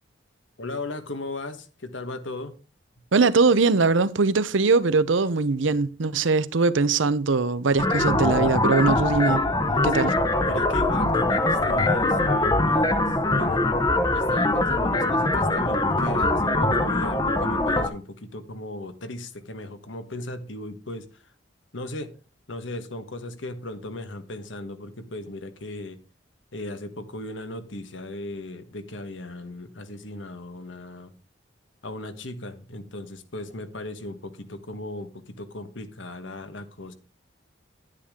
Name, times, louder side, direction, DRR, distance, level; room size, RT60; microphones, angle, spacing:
voice 1, 0.6-2.5 9.6-13.6 14.1-21.3 21.7-22.2 22.5-26.0 26.5-31.1 31.8-36.9, left 1 dB, 80° left, 1.4 m, -37 dB
voice 2, 3.1-9.4 9.8-10.1, right 4 dB, 80° right, 0.7 m, -21 dB
sound 1, 7.8-17.9, left 2 dB, 20° left, 0.8 m, -22 dB
10.0 x 9.9 x 3.6 m
head